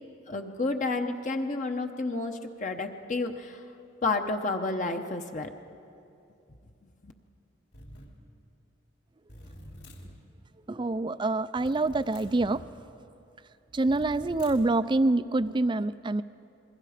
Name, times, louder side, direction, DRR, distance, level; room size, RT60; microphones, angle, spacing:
voice 1, 0.3-3.6 4.0-5.5 7.0-7.1, left 3 dB, 40° left, 5 dB, 1.0 m, -30 dB
sound 1, 7.7-8.2 9.3-10.2 11.6-12.7 13.8-14.8, equal, 60° left, 2.9 m, -47 dB
voice 2, 10.7-12.6 13.7-16.2, right 2 dB, 25° right, 14 dB, 0.4 m, -26 dB
28.0 x 22.0 x 5.0 m, 2.6 s
head